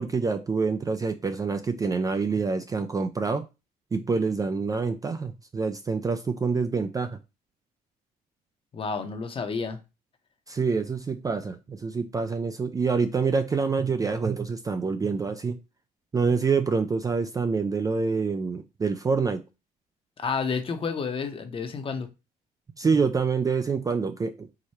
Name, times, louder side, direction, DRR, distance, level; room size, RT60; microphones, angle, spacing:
voice 1, 0.0-3.4 3.9-7.2 10.5-15.6 16.1-19.4 22.8-24.5, right 4 dB, 20° right, 0.4 m, -26 dB
voice 2, 8.7-9.8 20.2-22.1, left 5 dB, 30° left, 0.8 m, -30 dB
4.8 x 2.2 x 4.2 m
cardioid pair, 110°, 17 cm